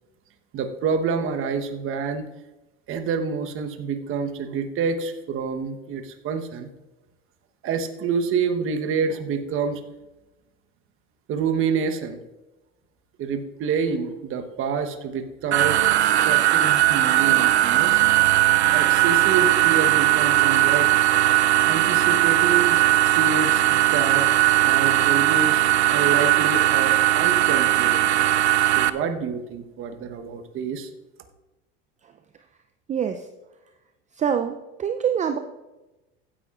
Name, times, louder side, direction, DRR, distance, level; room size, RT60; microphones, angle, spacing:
voice 1, 0.5-2.2 2.9-6.7 7.6-9.8 11.3-12.2 13.2-18.1 18.7-21.0 21.6-24.3 24.6-28.5 28.7-30.9, right 5 dB, 40° right, 6 dB, 1.1 m, -28 dB
sound 1, 15.5-28.9, right 14 dB, 90° right, 0.5 m, -19 dB
voice 2, 32.9-33.2 34.2-35.4, right 8 dB, 25° right, 8 dB, 0.5 m, -25 dB
15.5 x 10.0 x 2.5 m, 1.1 s
hypercardioid pair, 85°, 32 cm